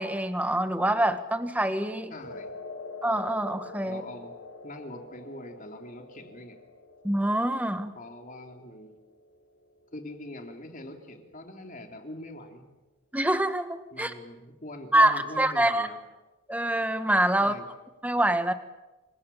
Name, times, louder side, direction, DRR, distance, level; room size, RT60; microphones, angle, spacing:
voice 1, 0.0-2.1 3.0-4.0 7.0-7.9 13.1-14.1 14.9-15.9 16.5-17.5 18.0-18.5, right 1 dB, 5° right, 9 dB, 1.5 m, -25 dB
voice 2, 2.1-2.5 3.8-4.3 4.6-6.6 7.9-8.9 9.9-12.6 13.9-16.0 17.4-17.6, left 1 dB, 40° left, 4 dB, 3.4 m, -43 dB
sound 1, 2.2-10.6, left 3 dB, 80° left, 2.7 m, -46 dB
28.5 x 25.5 x 7.3 m, 1.1 s
head